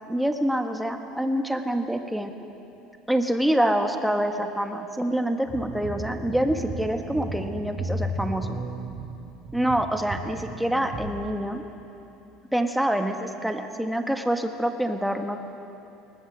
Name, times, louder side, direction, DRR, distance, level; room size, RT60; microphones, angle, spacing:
voice 1, 0.1-2.3 3.1-8.6 9.5-11.6 12.5-15.4, right 1 dB, ahead, 5 dB, 1.4 m, -26 dB
sound 1, 5.5-11.1, right 1 dB, 30° right, 2.5 m, -34 dB
20.0 x 19.5 x 7.5 m, 2.8 s
cardioid pair, 135°, 0 cm